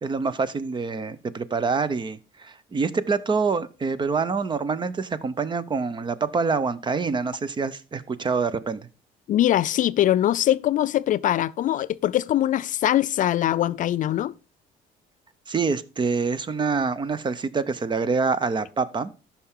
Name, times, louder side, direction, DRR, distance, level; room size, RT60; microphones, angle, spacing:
voice 1, 0.0-8.9 15.5-19.1, right 4 dB, 30° right, 0.6 m, -26 dB
voice 2, 9.3-14.3, left 12 dB, 50° left, 0.4 m, -22 dB
13.0 x 5.6 x 3.6 m
cardioid pair, 110°, 17 cm